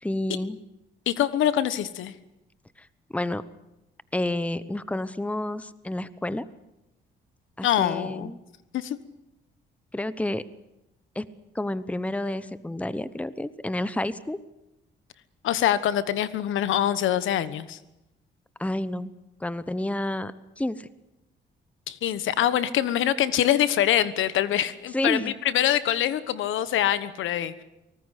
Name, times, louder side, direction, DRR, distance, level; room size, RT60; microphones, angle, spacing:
voice 1, 0.0-0.6 2.8-2.9 3.1-3.4 4.1-6.5 7.6-8.4 9.9-10.4 11.1-11.3 11.5-14.4 18.6-19.1 19.4-20.9 24.9-25.3, left 1 dB, 5° left, 15 dB, 1.0 m, -30 dB
voice 2, 1.1-2.1 7.6-8.3 8.7-9.0 15.4-17.8 21.9-27.6, left 11 dB, 80° left, 15 dB, 1.3 m, -24 dB
24.0 x 19.0 x 8.3 m, 0.91 s
cardioid pair, 90°, 20 cm